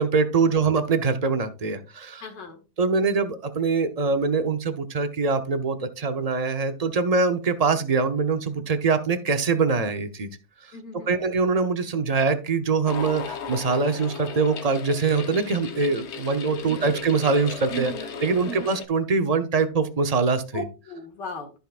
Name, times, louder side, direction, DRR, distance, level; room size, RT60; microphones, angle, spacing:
voice 1, 0.0-2.2 2.8-10.3 10.6-10.7 11.1-17.9 18.2-20.6, right 4 dB, 45° right, 8 dB, 0.4 m, -23 dB
voice 2, 2.2-2.6 10.7-11.2 16.6-16.9 17.7-18.1 18.5-18.7 20.5-21.5, equal, 80° left, 4 dB, 2.5 m, -37 dB
sound 1, 12.9-18.9, left 5 dB, 55° left, 0.8 m, -36 dB
14.0 x 5.6 x 2.5 m, 0.30 s
omnidirectional pair, 1.9 m